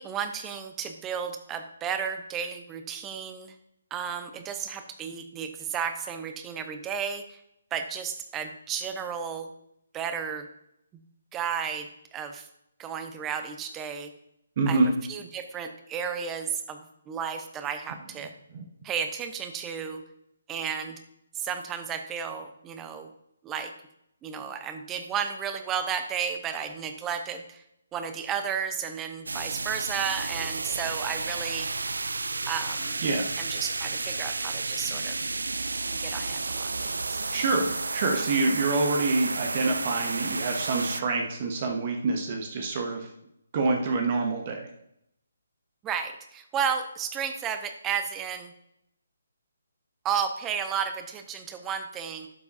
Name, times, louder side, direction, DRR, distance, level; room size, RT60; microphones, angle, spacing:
voice 1, 0.0-3.6 3.9-7.4 7.7-9.5 9.9-10.5 11.3-12.5 12.8-14.1 14.7-14.8 15.1-18.3 18.8-20.0 20.5-21.0 21.3-23.1 23.4-23.7 24.2-27.6 27.9-31.7 32.5-33.0 33.4-35.2 35.9-37.2 45.8-48.5 50.0-52.3, right 7 dB, 15° right, 8 dB, 0.7 m, -33 dB
voice 2, 14.6-14.9 18.5-18.6 33.0-33.3 37.3-43.1 43.5-44.7, right 3 dB, 40° right, 3 dB, 1.1 m, -26 dB
sound 1, 29.3-41.0, right 3 dB, 70° right, 0.4 m, -32 dB
12.0 x 7.0 x 2.7 m, 0.77 s
figure-of-eight pair, 140°, 0 cm